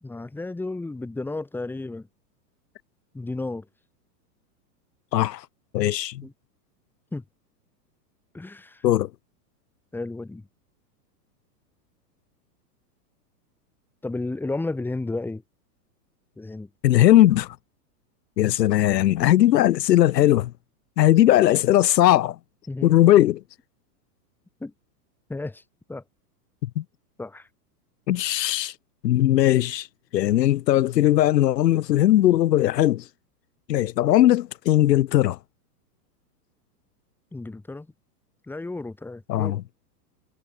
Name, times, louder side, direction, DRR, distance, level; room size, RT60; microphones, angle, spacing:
voice 1, 0.0-2.1 3.1-3.7 6.2-6.3 7.1-7.2 8.3-8.8 9.9-10.5 14.0-15.4 16.4-16.7 22.7-23.0 24.6-24.7 25.3-25.6 25.9-26.0 27.2-27.5 37.3-37.9 38.5-39.6, left 2 dB, 5° left, 2.0 m, -32 dB
voice 2, 5.1-5.4 5.7-6.3 8.8-9.1 16.8-17.6 18.4-20.5 21.0-22.4 22.8-23.4 26.8-26.9 28.1-28.7 29.0-29.9 30.1-33.0 33.7-35.4 39.3-39.6, left 13 dB, 85° left, 1.2 m, -19 dB
supercardioid pair, 150°, 48 cm